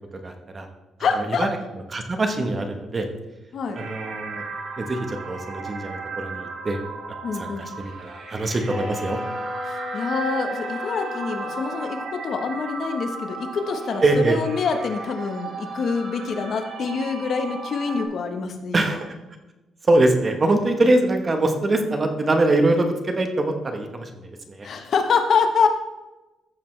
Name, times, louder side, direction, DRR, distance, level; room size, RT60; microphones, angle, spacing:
voice 1, 0.2-0.7 1.2-1.5 1.9-3.1 3.8-4.4 4.8-6.8 7.3-9.2 14.0-14.4 18.7-19.1 19.9-24.7, right 2 dB, 25° right, 5 dB, 1.1 m, -23 dB
voice 2, 1.0-1.5 3.5-3.8 7.2-7.6 9.7-18.8 24.6-25.7, left 5 dB, 50° left, 6 dB, 1.1 m, -25 dB
sound 1, 3.7-18.1, right 4 dB, 70° right, 3.0 m, -35 dB
Wind instrument woodwind instrument, 8.7-12.1, left 2 dB, ahead, 1.1 m, -33 dB
14.5 x 6.8 x 3.2 m, 1.1 s
cardioid pair, 140°, 0 cm